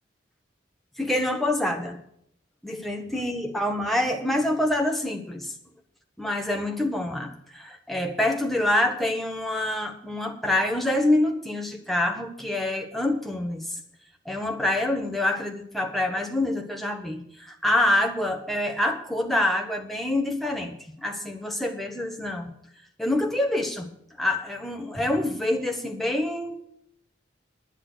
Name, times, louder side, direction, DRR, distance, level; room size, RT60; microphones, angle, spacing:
voice 1, 1.0-2.0 2.6-5.5 6.2-13.8 14.2-20.7 21.0-22.5 23.0-23.9 24.2-26.6, left 1 dB, ahead, 3 dB, 1.4 m, -26 dB
10.5 x 9.9 x 6.3 m, 0.70 s
head